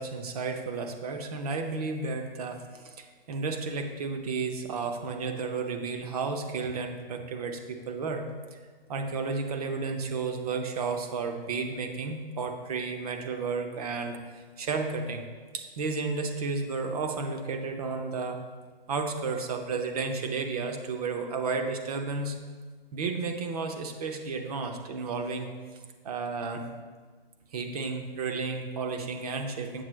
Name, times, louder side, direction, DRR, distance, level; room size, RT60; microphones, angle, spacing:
voice 1, 0.0-8.3 8.5-8.6 8.9-15.3 15.5-18.4 18.9-22.4 22.9-25.5 26.0-26.7 27.5-29.8, right 4 dB, 40° right, 5 dB, 0.8 m, -32 dB
7.7 x 7.2 x 3.2 m, 1.5 s
hypercardioid pair, 140°, 30 cm